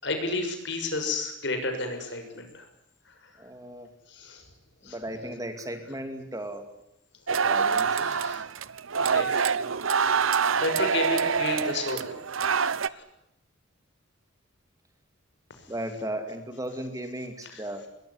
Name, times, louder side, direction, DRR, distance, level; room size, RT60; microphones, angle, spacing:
voice 1, 0.0-2.7 3.2-3.3 4.1-4.4 4.8-5.0 8.0-8.4 8.9-9.4 10.1-10.3 10.6-12.2 12.7-13.0 17.5-17.6, left 2 dB, 60° left, 6 dB, 6.8 m, -32 dB
voice 2, 3.4-3.9 4.8-6.7 7.3-8.1 15.7-17.9, right 1 dB, 15° right, 7 dB, 2.5 m, -36 dB
sound 1, 7.3-12.9, right 6 dB, 90° right, 0.9 m, -25 dB
22.0 x 21.5 x 9.9 m, 0.79 s
head